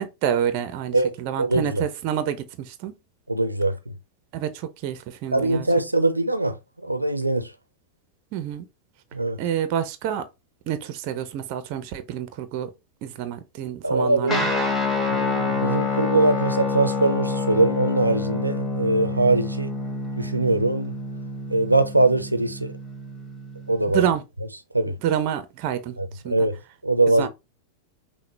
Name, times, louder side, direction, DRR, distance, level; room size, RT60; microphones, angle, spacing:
voice 1, 0.0-2.9 4.3-5.6 8.3-8.7 9.4-10.3 10.7-12.7 13.0-14.5 23.9-24.2 24.9-26.0 26.2-26.4 27.2-27.3, right 9 dB, 45° right, 0.6 m, -28 dB
voice 2, 0.9-1.8 3.3-3.9 5.3-7.5 9.1-9.4 13.8-14.4 15.0-19.7 20.2-20.9 21.5-22.7 23.7-24.0 24.7-25.0 26.0-26.6 26.8-27.3, right 2 dB, 85° right, 0.6 m, -22 dB
Guitar, 14.3-24.1, left 3 dB, 10° left, 1.2 m, -27 dB
5.8 x 2.2 x 3.1 m
figure-of-eight pair, 90°, 0 cm